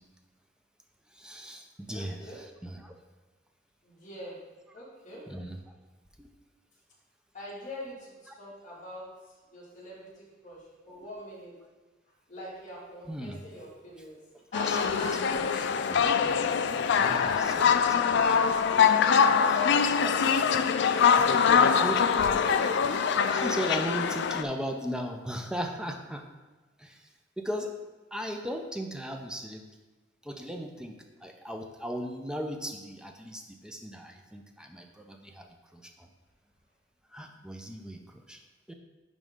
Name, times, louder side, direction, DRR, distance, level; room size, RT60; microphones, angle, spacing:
voice 1, 1.1-2.9 5.3-5.6 6.2-6.3 8.3-8.4 13.1-13.4 14.7-14.8 15.4-16.4 16.7-18.4 19.4-20.2 21.1-21.3 21.6-22.0 23.3-26.2 26.8-27.1 27.4-27.7 28.1-29.8 30.2-36.1 37.1-38.4 38.7-38.8, equal, 5° right, 4 dB, 0.6 m, -37 dB
voice 2, 1.9-2.4 3.8-4.4 4.7-5.2 7.3-9.0 9.5-11.5 12.3-14.2 14.5-15.4 18.3-19.4 21.1-22.1, equal, 40° left, -7 dB, 2.4 m, -43 dB
sound 1, 14.5-24.4, left 6 dB, 65° left, 0.4 m, -24 dB
10.5 x 3.7 x 3.7 m, 1.2 s
head